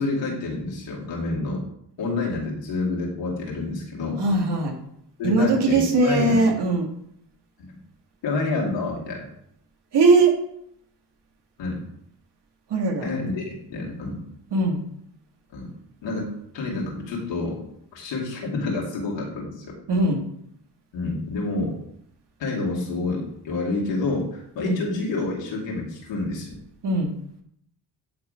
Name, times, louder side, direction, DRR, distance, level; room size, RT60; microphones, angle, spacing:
voice 1, 0.0-1.7 2.0-4.2 5.2-6.4 7.6-7.7 8.2-9.3 11.6-11.8 13.0-13.4 13.7-14.2 15.5-15.7 16.0-17.6 17.9-19.8 20.9-21.8 22.4-26.6, left 3 dB, 85° left, -3 dB, 2.5 m, -28 dB
voice 2, 4.2-4.8 5.2-6.9 9.9-10.4 12.7-13.1 14.5-14.8 19.9-20.2 24.6-24.8 26.8-27.1, right 3 dB, 70° right, 2 dB, 2.0 m, -20 dB
9.5 x 3.8 x 5.0 m, 0.72 s
supercardioid pair, 50°, 43 cm